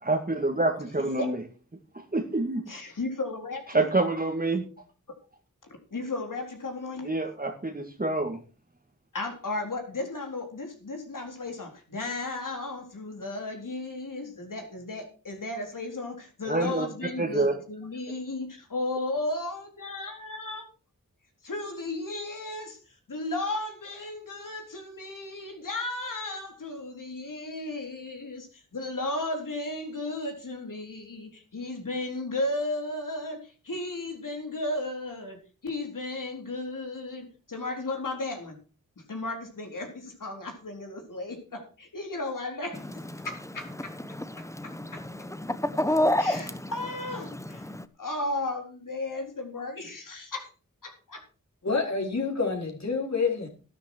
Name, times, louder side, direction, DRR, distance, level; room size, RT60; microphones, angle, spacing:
voice 1, 0.0-1.4 2.1-2.6 3.7-4.6 7.1-8.4 16.5-16.9 17.2-17.5, right 2 dB, 25° right, 2.2 m, -26 dB
voice 2, 2.7-3.9 5.9-7.2 9.1-20.6 21.4-22.8 23.1-38.6 39.1-42.9 43.2-43.9 44.4-45.0 45.7-45.8 46.2-47.7 48.0-50.5 50.8-51.2, left 2 dB, 70° left, 4.1 m, -34 dB
Chicken rooster, 42.7-47.8, left 1 dB, 10° left, 1.0 m, -30 dB
voice 3, 51.6-53.5, left 4 dB, 55° left, 4.7 m, -28 dB
12.0 x 11.5 x 4.7 m
cardioid pair, 50°, 33 cm